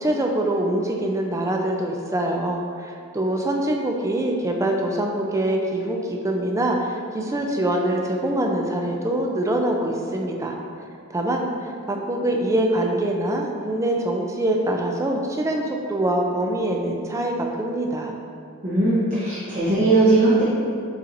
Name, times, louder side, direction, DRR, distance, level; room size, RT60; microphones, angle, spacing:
voice 1, 0.0-10.5 11.1-11.5 11.9-18.2, right 1 dB, 15° right, 1 dB, 0.3 m, -24 dB
voice 2, 18.6-20.4, right 2 dB, 35° right, -11 dB, 0.7 m, -19 dB
6.8 x 2.9 x 2.5 m, 2.4 s
head